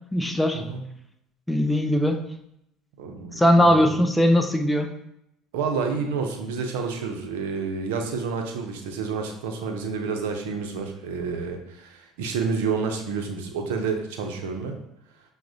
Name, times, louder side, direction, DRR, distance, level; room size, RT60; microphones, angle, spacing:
voice 1, 0.1-0.6 1.5-2.2 3.4-4.9, equal, 5° left, 6 dB, 0.4 m, -20 dB
voice 2, 3.0-3.9 5.5-14.8, right 5 dB, 80° right, 4 dB, 0.5 m, -29 dB
5.7 x 2.1 x 2.6 m, 0.79 s
hypercardioid pair, 80°, 0 cm